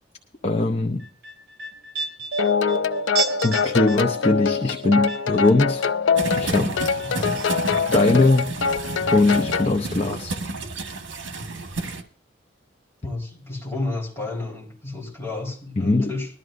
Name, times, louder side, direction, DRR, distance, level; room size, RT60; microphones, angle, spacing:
voice 1, 0.4-1.1 3.4-5.9 6.4-6.8 7.9-8.5 9.1-10.3 15.8-16.1, left 2 dB, 35° left, 2 dB, 0.7 m, -20 dB
sound 1, 1.0-6.2 6.5-7.4 7.7-7.8, right 4 dB, 50° right, 3.1 m, -32 dB
sound 2, 2.4-9.8, left 6 dB, 75° left, 0.5 m, -24 dB
sound 3, 6.1-12.0, right 3 dB, 80° right, 1.5 m, -31 dB
voice 2, 7.1-7.4 13.0-16.3, left 2 dB, 10° left, -5 dB, 4.1 m, -31 dB
21.0 x 12.5 x 2.6 m, 0.39 s
head